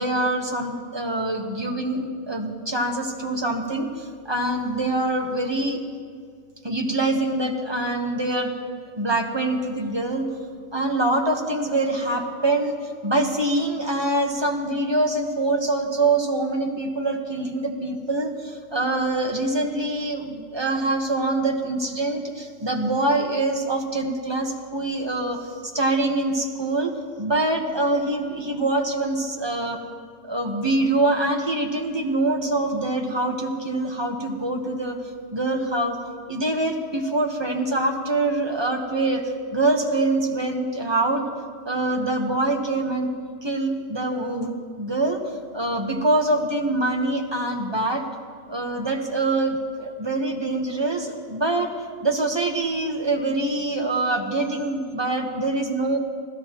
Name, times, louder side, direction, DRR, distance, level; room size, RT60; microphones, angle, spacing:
voice 1, 0.0-5.8 6.6-8.5 8.9-10.3 10.7-12.8 13.0-26.9 27.2-29.8 30.2-35.0 35.3-36.0 36.3-39.2 39.5-41.2 41.6-43.1 43.4-45.2 45.5-48.0 48.5-51.7 52.0-56.0, right 2 dB, 20° right, 2 dB, 1.2 m, -24 dB
25.5 x 15.0 x 3.0 m, 2.1 s
omnidirectional pair, 1.4 m